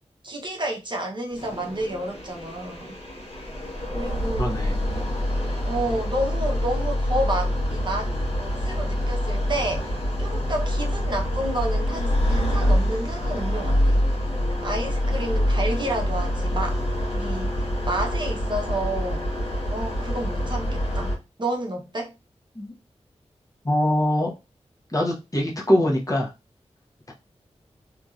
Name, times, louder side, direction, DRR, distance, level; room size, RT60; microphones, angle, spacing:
voice 1, 0.2-3.0 3.9-4.6 5.6-8.1 8.6-14.0 14.6-16.8 17.2-19.3 19.7-22.1, right 1 dB, 40° right, 0.9 m, -30 dB
sound 1, 1.3-21.1, equal, 55° left, 1.3 m, -26 dB
voice 2, 4.4-4.7 22.5-22.7 23.6-24.3 24.9-26.3, left 1 dB, 30° left, 1.1 m, -23 dB
2.9 x 2.6 x 2.4 m
cardioid pair, 45°, 12 cm